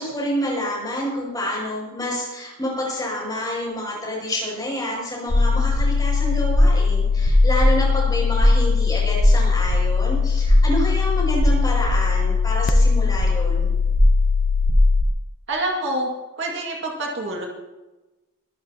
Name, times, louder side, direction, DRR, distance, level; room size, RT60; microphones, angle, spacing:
voice 1, 0.0-13.7, left 1 dB, 20° left, -3 dB, 6.3 m, -28 dB
sound 1, 5.3-15.1, left 3 dB, 45° left, 0.7 m, -18 dB
voice 2, 15.5-16.1 16.4-17.5, right 1 dB, 60° right, -1 dB, 2.1 m, -26 dB
23.0 x 14.0 x 2.9 m, 1.1 s
head